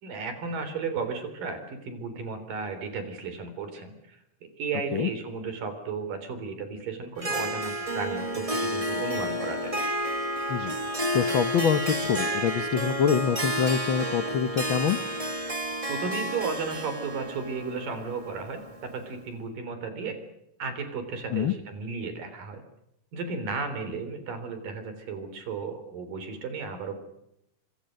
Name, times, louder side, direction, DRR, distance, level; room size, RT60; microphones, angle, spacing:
voice 1, 0.0-9.8 15.9-18.6 18.9-20.2 20.6-22.6 23.1-27.0, right 4 dB, 80° right, 9 dB, 5.3 m, -34 dB
Harp, 7.2-19.0, equal, 25° right, 0.8 m, -31 dB
voice 2, 11.1-15.0 21.3-21.5, left 7 dB, 90° left, 10 dB, 1.1 m, -25 dB
26.0 x 25.5 x 6.5 m, 0.83 s
omnidirectional pair, 3.8 m